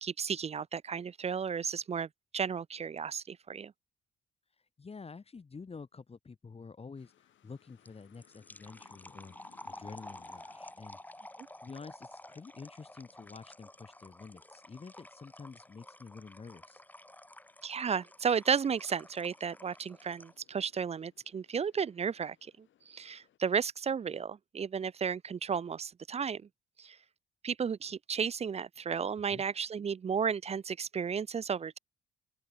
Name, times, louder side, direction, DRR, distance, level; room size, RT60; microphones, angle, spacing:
voice 1, 0.0-3.7 17.6-26.5 26.8-27.0 27.4-31.8, right 6 dB, 30° right, 0.5 m, -33 dB
voice 2, 4.8-11.0 11.6-16.8 29.3-29.4, left 4 dB, 30° left, 2.2 m, -49 dB
sound 1, 7.0-23.4, left 11 dB, 70° left, 5.6 m, -68 dB
sound 2, 7.9-20.5, left 1 dB, 10° left, 5.2 m, -51 dB
open air
cardioid pair, 90°, 20 cm